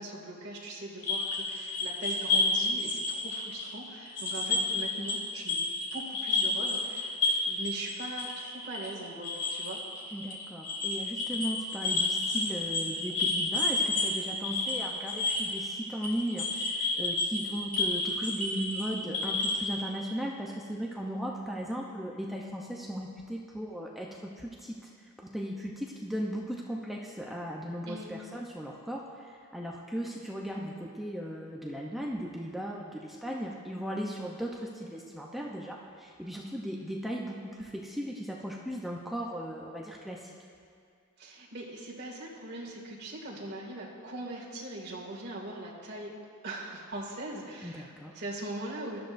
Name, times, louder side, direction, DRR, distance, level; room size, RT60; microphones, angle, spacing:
voice 1, 0.0-5.6 5.9-9.8 27.8-28.1 41.2-46.1 46.4-49.0, right 1 dB, 45° right, -4 dB, 2.2 m, -41 dB
sound 1, 1.0-5.2 5.5-19.7, left 3 dB, 35° left, 2.3 m, -30 dB
voice 2, 10.1-40.3 47.6-48.1, equal, ahead, -3 dB, 0.7 m, -37 dB
20.5 x 12.5 x 2.6 m, 2.2 s
head